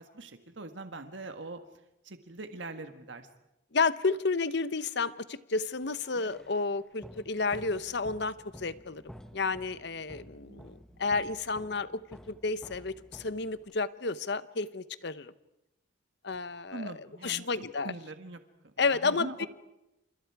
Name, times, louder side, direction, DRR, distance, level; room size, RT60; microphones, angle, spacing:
voice 1, 0.0-1.6 2.0-3.3 10.5-10.6 16.7-17.5 17.8-18.4 19.0-19.5, right 2 dB, 65° right, 8 dB, 1.6 m, -42 dB
voice 2, 3.7-9.0 9.3-12.0 12.3-15.3 16.2-17.9 18.8-19.5, left 4 dB, 60° left, 14 dB, 0.9 m, -31 dB
sound 1, 5.7-13.9, equal, 5° left, 1.0 m, -52 dB
30.0 x 28.0 x 4.8 m, 0.90 s
head